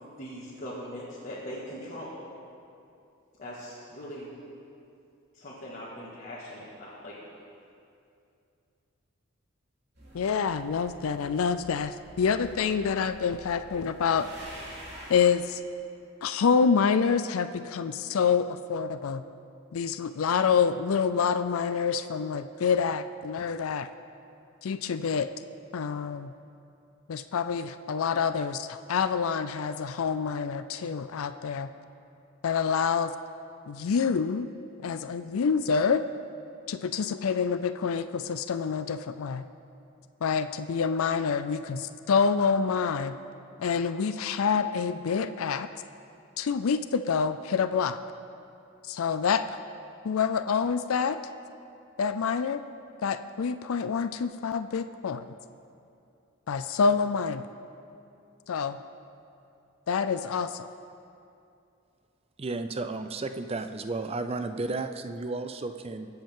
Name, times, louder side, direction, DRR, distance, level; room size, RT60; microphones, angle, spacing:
voice 1, 0.2-2.2 3.4-4.3 5.3-7.4, equal, 35° left, -8 dB, 1.8 m, -40 dB
sound 1, 9.9-15.2, equal, 50° right, 3.5 m, -47 dB
voice 2, 10.1-14.3 15.1-15.6 16.2-19.2 19.7-23.9 24.6-25.3 25.7-26.3 27.1-31.7 32.4-33.1 33.7-34.5 34.8-36.0 36.7-39.5 40.2-43.2 43.6-45.7 46.4-48.0 48.9-49.4 50.0-51.2 52.0-52.6 53.0-55.2 56.5-57.4 58.5-58.8 59.9-60.7, left 6 dB, 75° left, 11 dB, 0.4 m, -27 dB
voice 3, 62.4-66.1, right 3 dB, 30° right, 8 dB, 0.5 m, -33 dB
23.0 x 7.9 x 3.7 m, 2.6 s
head